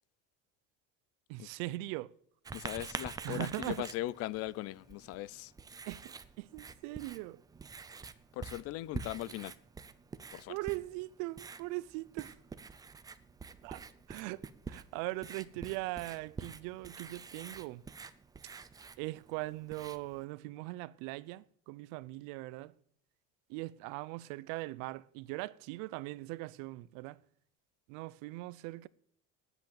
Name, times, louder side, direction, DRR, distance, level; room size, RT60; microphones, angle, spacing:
voice 1, 1.3-2.1 3.2-3.9 5.9-7.4 10.5-12.4 13.6-14.4 14.7-17.8 19.0-22.7 23.5-27.2 27.9-28.9, right 20 dB, 80° right, 0.6 m, -40 dB
voice 2, 2.5-5.5 8.3-9.5 10.3-10.6, left 16 dB, 50° left, 0.5 m, -39 dB
Writing, 2.5-20.3, right 5 dB, 10° right, 0.5 m, -47 dB
10.0 x 8.1 x 8.8 m
cardioid pair, 160°, 32 cm